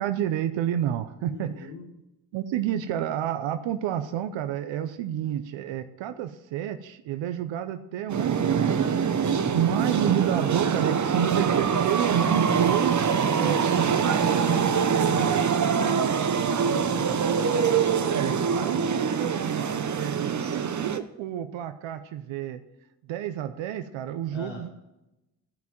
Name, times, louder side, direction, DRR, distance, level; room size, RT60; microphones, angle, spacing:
voice 1, 0.0-1.7 2.3-8.9 9.5-15.4 15.8-16.1 18.1-22.6 23.0-24.7, right 10 dB, 80° right, 10 dB, 0.8 m, -30 dB
voice 2, 1.3-1.8 9.2-9.7 15.8-17.2 18.4-19.0 24.3-24.6, left 4 dB, 85° left, 0 dB, 1.6 m, -42 dB
sound 1, 8.1-21.0, right 6 dB, 40° right, 1.0 m, -24 dB
13.5 x 5.8 x 7.6 m, 0.93 s
hypercardioid pair, 45°, 45 cm